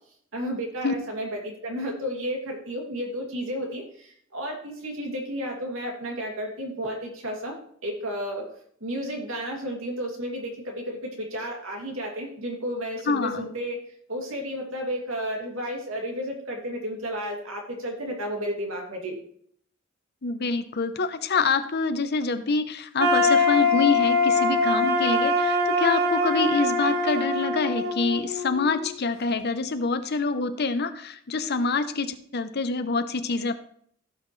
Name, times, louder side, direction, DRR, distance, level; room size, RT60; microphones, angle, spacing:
voice 1, 0.3-8.5 8.8-13.8 14.1-19.2, equal, 80° right, 0 dB, 2.7 m, -32 dB
voice 2, 13.1-13.5 20.2-33.6, left 4 dB, 50° left, 10 dB, 0.8 m, -26 dB
sound 1, 23.0-28.9, left 2 dB, 50° right, 1.5 m, -23 dB
16.0 x 6.0 x 3.2 m, 0.63 s
head